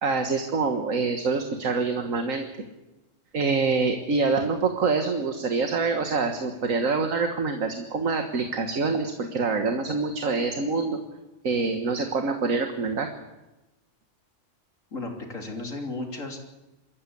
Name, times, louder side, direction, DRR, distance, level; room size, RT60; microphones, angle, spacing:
voice 1, 0.0-2.4 3.3-11.0 11.4-13.1, right 4 dB, 90° right, 5 dB, 1.9 m, -25 dB
voice 2, 14.9-16.4, left 2 dB, 80° left, 1 dB, 3.6 m, -34 dB
26.0 x 14.0 x 8.4 m, 1.0 s
omnidirectional pair, 1.3 m